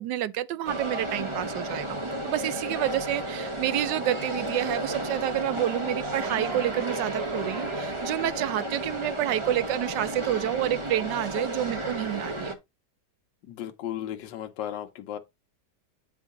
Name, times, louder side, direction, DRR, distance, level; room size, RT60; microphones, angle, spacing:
voice 1, 0.0-2.0 2.2-12.6, right 12 dB, 75° right, 1.1 m, -29 dB
sound 1, 0.6-12.5, right 1 dB, 25° right, 0.6 m, -33 dB
Human voice / Clapping / Cheering, 3.9-9.9, right 3 dB, 55° right, 1.5 m, -45 dB
voice 2, 13.5-15.2, left 11 dB, 75° left, 1.4 m, -35 dB
8.8 x 4.7 x 3.7 m
omnidirectional pair, 2.0 m